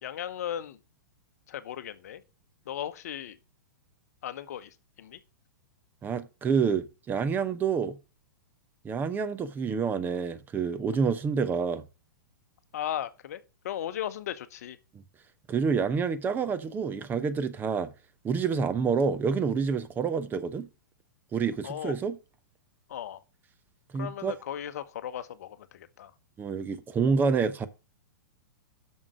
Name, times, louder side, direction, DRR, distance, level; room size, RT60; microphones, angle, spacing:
voice 1, 0.0-0.8 1.5-2.2 2.7-3.4 4.2-4.7 5.0-5.2 12.7-14.8 21.6-21.9 22.9-23.2 24.0-26.1, left 10 dB, 55° left, 0.9 m, -36 dB
voice 2, 6.0-7.9 8.8-11.8 15.5-17.9 18.2-20.7 21.3-22.2 23.9-24.3 26.4-27.7, right 5 dB, 20° right, 0.8 m, -28 dB
7.4 x 6.4 x 6.2 m
figure-of-eight pair, 105°, 10 cm